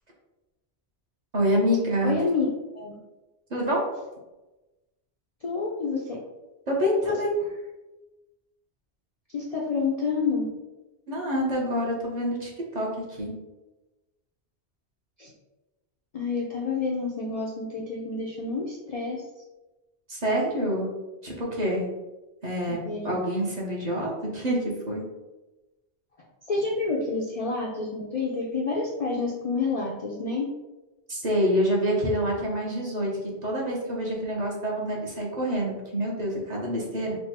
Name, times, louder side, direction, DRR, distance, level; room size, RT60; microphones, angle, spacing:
voice 1, 1.3-2.2 3.5-3.8 6.7-7.3 11.1-13.3 20.1-20.9 21.2-21.9 22.4-22.8 23.0-25.0 31.1-33.1 33.4-37.2, equal, 40° right, -3 dB, 0.8 m, -26 dB
voice 2, 2.0-2.5 2.7-3.0 5.4-6.2 7.0-7.2 9.3-10.5 15.2-15.3 16.1-19.2 22.8-23.2 26.5-30.5, left 4 dB, 50° left, -2 dB, 0.4 m, -28 dB
3.4 x 2.2 x 4.1 m, 1.1 s
omnidirectional pair, 1.1 m